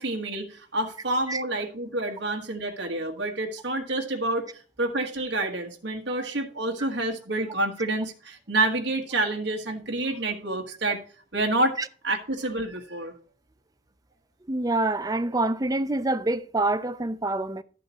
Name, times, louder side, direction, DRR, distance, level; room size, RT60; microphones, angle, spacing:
voice 1, 0.0-11.0 11.3-11.8 12.0-13.1, right 2 dB, 65° right, 1.4 m, -28 dB
voice 2, 14.5-17.6, right 2 dB, 20° right, 0.5 m, -26 dB
12.5 x 7.6 x 2.9 m
head